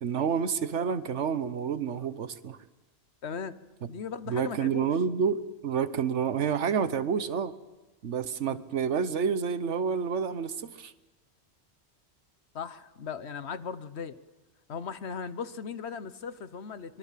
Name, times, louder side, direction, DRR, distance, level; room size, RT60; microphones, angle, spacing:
voice 1, 0.0-2.6 4.3-7.5 8.0-10.9, right 6 dB, 90° right, 13 dB, 1.3 m, -29 dB
voice 2, 3.2-5.0 8.5-8.6 12.5-14.2 14.7-17.0, left 6 dB, 70° left, 13 dB, 1.3 m, -38 dB
24.5 x 22.5 x 7.5 m, 1.1 s
omnidirectional pair, 1.2 m